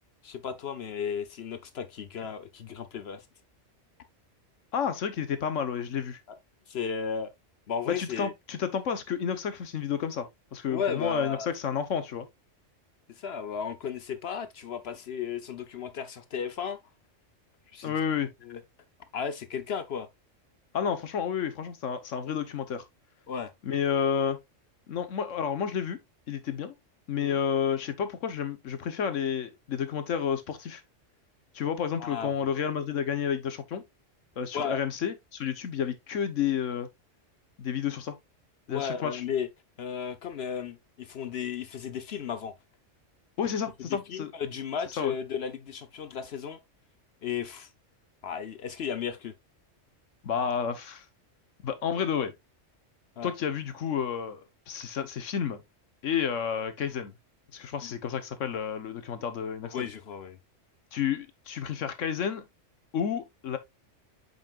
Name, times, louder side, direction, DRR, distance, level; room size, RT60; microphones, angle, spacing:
voice 1, 0.2-3.2 6.3-6.4 6.7-7.3 7.7-8.3 10.7-11.5 13.1-16.8 17.7-17.9 18.5-18.6 19.1-20.1 23.3-23.5 27.2-27.4 32.0-32.3 34.5-34.8 38.7-39.5 39.8-42.5 43.9-46.6 47.2-47.7 48.2-49.3 53.2-53.3 57.8-57.9 59.6-60.4, left 7 dB, 60° left, 0.9 m, -34 dB
voice 2, 4.7-6.2 7.9-12.3 17.8-18.3 20.7-22.8 23.6-24.4 24.9-26.0 26.3-26.7 27.1-30.8 31.5-33.8 34.4-36.9 37.6-38.1 38.7-39.2 43.4-44.3 45.0-45.1 50.2-51.0 51.6-52.3 53.2-55.6 56.0-57.1 57.5-59.9 60.9-62.4 62.9-63.6, left 7 dB, 85° left, 1.3 m, -30 dB
7.7 x 5.6 x 2.4 m
omnidirectional pair, 1.3 m